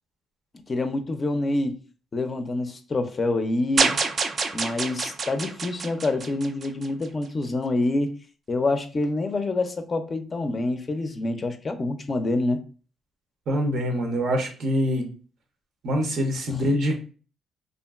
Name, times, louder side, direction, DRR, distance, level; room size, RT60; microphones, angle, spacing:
voice 1, 0.7-1.8 2.1-3.9 4.5-8.2 8.5-12.6 16.5-16.6, left 2 dB, 35° left, 0.4 m, -26 dB
sound 1, 3.8-7.1, right 4 dB, 45° right, 0.3 m, -27 dB
voice 2, 13.5-15.1 15.8-17.0, equal, 70° right, 0.7 m, -24 dB
2.8 x 2.5 x 2.3 m
cardioid pair, 90°, 0 cm